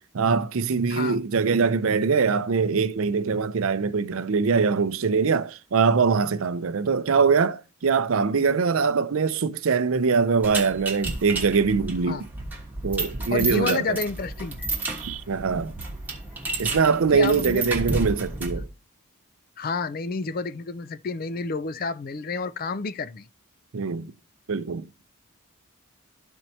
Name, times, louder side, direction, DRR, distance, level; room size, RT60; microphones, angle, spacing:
voice 1, 0.0-12.2 12.8-14.0 14.9-15.7 16.6-18.7 23.7-24.1 24.5-24.8, right 5 dB, 75° right, 0.5 m, -23 dB
sound 1, 10.4-18.7, right 2 dB, 10° right, 1.2 m, -31 dB
voice 2, 13.3-14.7 17.1-17.6 19.6-23.3, left 4 dB, 40° left, 0.4 m, -30 dB
13.0 x 4.4 x 2.7 m
head